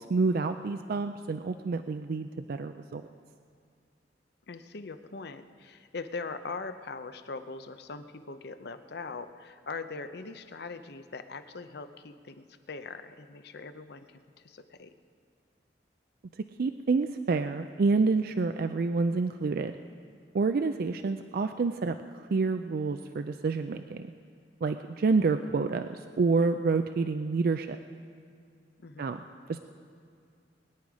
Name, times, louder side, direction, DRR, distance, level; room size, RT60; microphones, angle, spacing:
voice 1, 0.0-3.1 16.6-19.8 20.3-22.0 22.3-24.1 24.6-27.8 29.0-29.2 29.5-29.6, right 4 dB, 55° right, 8 dB, 0.4 m, -28 dB
voice 2, 4.5-14.9 28.8-29.2, left 4 dB, 65° left, 10 dB, 0.7 m, -41 dB
21.5 x 9.8 x 4.8 m, 2.3 s
head